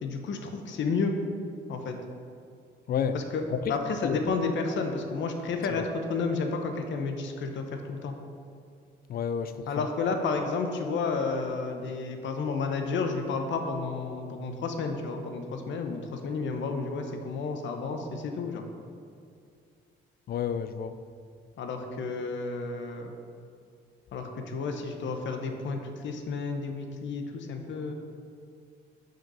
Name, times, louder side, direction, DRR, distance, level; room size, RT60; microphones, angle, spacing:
voice 1, 0.0-1.2 1.7-2.0 3.1-3.4 3.7-8.2 9.7-18.6 21.6-23.1 24.1-27.9, left 4 dB, 70° left, 5 dB, 0.9 m, -31 dB
voice 2, 9.1-9.9 20.3-20.9, left 8 dB, 50° left, 12 dB, 0.4 m, -30 dB
6.0 x 5.0 x 5.5 m, 2.3 s
cardioid pair, 90°, 20 cm